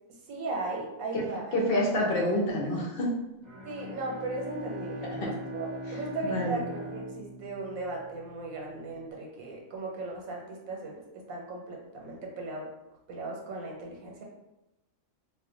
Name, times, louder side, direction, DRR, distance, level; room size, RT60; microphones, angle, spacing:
voice 1, 0.3-1.7 3.6-12.7 13.1-14.2, right 2 dB, 80° right, -1 dB, 1.2 m, -37 dB
voice 2, 1.5-3.1 5.2-5.3 6.2-6.6, left 1 dB, 50° left, -2 dB, 0.8 m, -27 dB
Bowed string instrument, 3.4-8.4, equal, 35° right, 0.8 m, -40 dB
2.5 x 2.3 x 3.7 m, 0.94 s
omnidirectional pair, 1.4 m